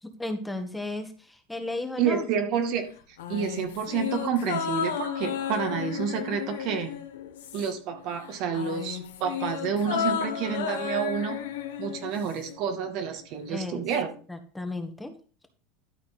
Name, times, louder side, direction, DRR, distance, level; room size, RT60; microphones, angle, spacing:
voice 1, 0.0-2.3 13.5-13.8 14.3-15.1, left 2 dB, 5° left, 6 dB, 1.6 m, -34 dB
voice 2, 2.0-2.9 3.3-6.9 7.5-11.4 11.8-14.1, right 7 dB, 60° right, 5 dB, 2.3 m, -29 dB
sound 1, 3.2-7.9 8.2-12.5 12.8-12.9, left 8 dB, 85° left, 1.4 m, -33 dB
12.0 x 4.5 x 5.6 m, 0.38 s
hypercardioid pair, 100°, 0 cm